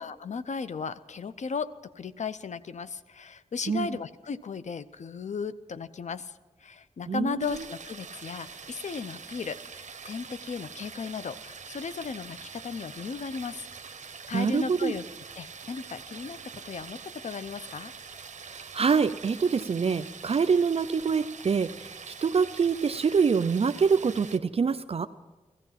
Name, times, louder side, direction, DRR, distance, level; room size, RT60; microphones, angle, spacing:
voice 1, 0.0-13.6 14.3-15.0 15.3-17.9, left 5 dB, 65° left, 14 dB, 0.6 m, -36 dB
voice 2, 7.1-7.4 14.3-14.9 18.4-25.1, right 5 dB, 50° right, 10 dB, 0.5 m, -25 dB
sound 1, 7.4-24.4, right 5 dB, 70° right, 0.9 m, -44 dB
16.5 x 14.5 x 5.7 m, 1.2 s
wide cardioid pair, 70°, 13 cm